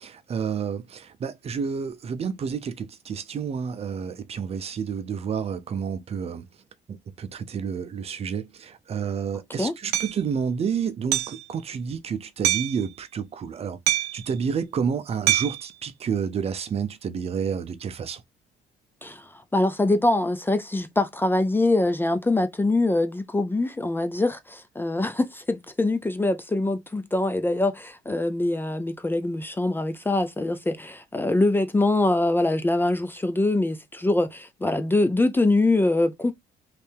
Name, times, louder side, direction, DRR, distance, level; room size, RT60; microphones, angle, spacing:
voice 1, 0.0-6.4 6.9-13.8 14.1-18.2, right 6 dB, 35° right, 0.6 m, -30 dB
Hammer, 9.9-10.1 11.1-11.4 12.4-12.8 13.9-14.3 15.3-15.7, right 13 dB, 90° right, 0.6 m, -24 dB
voice 2, 19.0-36.3, left 2 dB, 10° left, 0.5 m, -24 dB
3.2 x 2.7 x 3.3 m
cardioid pair, 110°, 17 cm